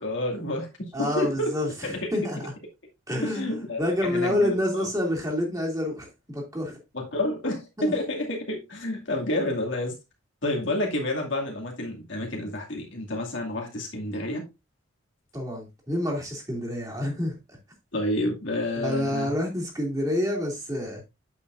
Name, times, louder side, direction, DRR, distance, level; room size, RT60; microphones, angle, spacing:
voice 1, 0.0-1.5 2.0-2.1 3.2-4.9 6.9-9.9 10.4-14.4 17.9-19.3, left 1 dB, 70° left, 2.3 m, -29 dB
voice 2, 0.9-2.5 3.1-6.8 7.8-7.9 15.3-17.6 18.8-21.0, left 1 dB, 15° right, 2.6 m, -28 dB
8.6 x 7.2 x 2.5 m
head